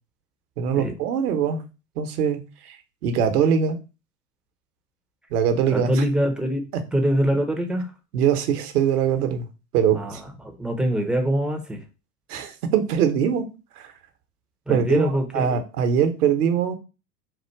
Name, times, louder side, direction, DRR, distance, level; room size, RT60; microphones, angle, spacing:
voice 1, 0.6-1.6 2.0-2.8 3.0-3.8 5.3-6.0 8.1-9.5 9.7-10.2 12.3-13.5 13.8-13.9 14.7-16.8, right 8 dB, 65° right, 7 dB, 1.0 m, -22 dB
voice 2, 5.7-6.6 6.9-7.9 9.9-11.8 14.7-15.5, right 1 dB, ahead, 4 dB, 0.7 m, -24 dB
4.2 x 2.5 x 4.5 m, 0.30 s
hypercardioid pair, 95°, 49 cm